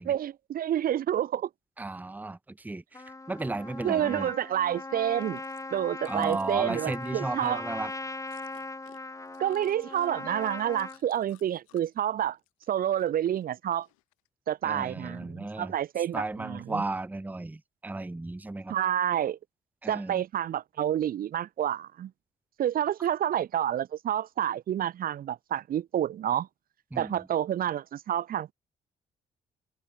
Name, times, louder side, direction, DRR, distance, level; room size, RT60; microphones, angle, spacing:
voice 1, 0.1-1.5 3.8-5.4 5.7-7.6 9.4-12.4 12.7-13.9 14.5-16.8 18.7-19.4 19.9-22.1 22.6-26.5 27.0-28.5, right 10 dB, 60° right, 0.9 m, -29 dB
voice 2, 1.8-4.3 6.1-7.9 14.6-15.7 16.1-18.8 19.8-20.2 26.9-27.2, right 2 dB, 10° right, 0.6 m, -34 dB
Trumpet, 2.9-11.0, left 2 dB, 20° left, 1.6 m, -39 dB
Chewing mastication, 5.0-12.0 12.3-13.1 13.4-14.3 14.8-14.9, left 24 dB, 90° left, 4.8 m, -61 dB
hypercardioid pair, 50°, 17 cm